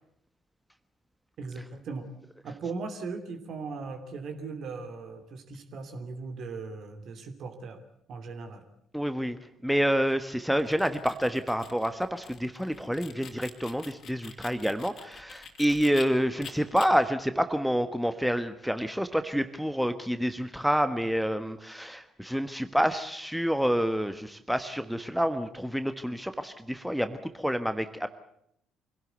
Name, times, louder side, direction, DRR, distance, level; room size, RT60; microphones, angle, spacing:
voice 1, 1.4-2.1 2.4-7.8 8.1-8.6, right 4 dB, 50° right, 7 dB, 2.8 m, -38 dB
voice 2, 8.9-28.1, equal, ahead, 10 dB, 1.3 m, -28 dB
sound 1, 10.5-16.0 16.4-16.9, left 7 dB, 50° left, 3.1 m, -46 dB
25.0 x 17.0 x 8.2 m, 0.73 s
figure-of-eight pair, 50°, 0 cm